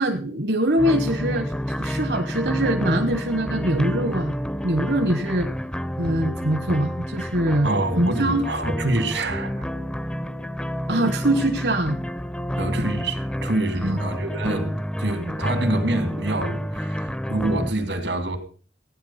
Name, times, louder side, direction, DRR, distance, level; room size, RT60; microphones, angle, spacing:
voice 1, 0.0-1.5 1.8-4.3 4.6-5.5 6.0-7.7 8.0-8.4 10.9-12.0 13.8-14.0, right 1 dB, 65° right, 1.1 m, -23 dB
sound 1, 0.8-17.7, equal, 5° left, 0.5 m, -29 dB
voice 2, 7.6-9.7 12.5-18.4, right 2 dB, 90° right, 2.6 m, -26 dB
15.0 x 9.8 x 5.7 m
head